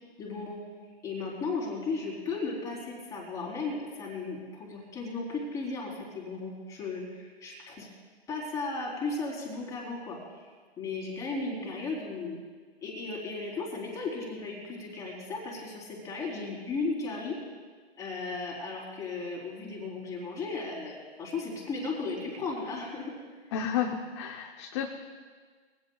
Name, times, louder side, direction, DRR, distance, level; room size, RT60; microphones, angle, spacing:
voice 1, 0.2-0.6 1.0-7.9 8.3-10.5 10.8-12.4 12.8-17.4 18.0-23.2, left 3 dB, 10° left, -4 dB, 3.8 m, -35 dB
voice 2, 23.5-24.9, left 8 dB, 25° left, 3 dB, 0.8 m, -31 dB
22.5 x 16.0 x 2.4 m, 1.5 s
hypercardioid pair, 150°, 32 cm